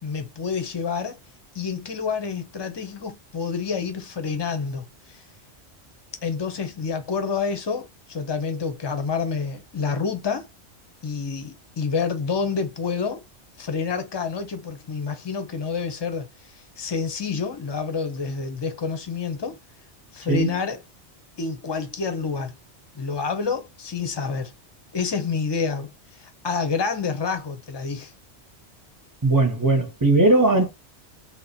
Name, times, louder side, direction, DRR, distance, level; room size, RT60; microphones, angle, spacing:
voice 1, 0.0-1.2 1.5-5.2 6.2-10.5 11.0-13.2 13.6-16.3 16.5-19.6 20.1-20.8 21.4-22.5 22.9-24.5 24.9-28.1, left 5 dB, 30° left, 0.6 m, -28 dB
voice 2, 29.2-30.7, right 2 dB, 20° right, 0.6 m, -18 dB
2.9 x 2.1 x 4.0 m
omnidirectional pair, 1.2 m